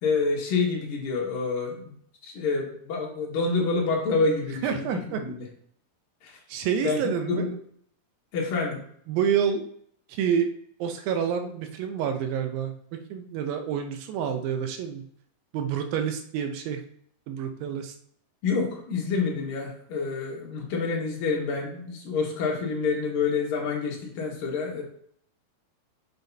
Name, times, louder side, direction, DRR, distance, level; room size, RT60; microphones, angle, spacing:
voice 1, 0.0-1.9 2.2-5.5 6.2-6.4 6.8-7.0 7.3-7.5 8.3-8.8 18.4-24.8, left 4 dB, 65° left, -2 dB, 3.1 m, -27 dB
voice 2, 4.6-5.2 6.5-7.6 9.1-9.6 10.1-10.5 10.8-12.7 13.1-15.0 15.5-16.8 17.3-18.0, right 8 dB, 80° right, 6 dB, 2.2 m, -28 dB
7.7 x 7.0 x 2.7 m, 0.65 s
omnidirectional pair, 4.6 m